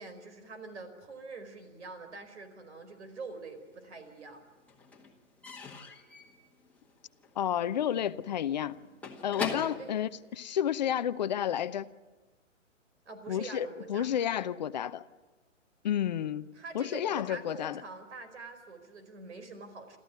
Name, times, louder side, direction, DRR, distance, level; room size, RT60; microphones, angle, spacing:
voice 1, 0.0-4.4 9.6-10.1 13.0-14.1 16.5-20.0, right 3 dB, 60° right, 4.8 m, -45 dB
Slam / Squeak / Wood, 3.2-4.0 4.3-11.0, left 4 dB, 5° left, 1.8 m, -43 dB
voice 2, 7.4-8.8 9.2-11.9 13.3-15.0 15.8-17.8, left 10 dB, 35° left, 0.7 m, -31 dB
28.5 x 14.5 x 9.5 m
figure-of-eight pair, 135°, 38 cm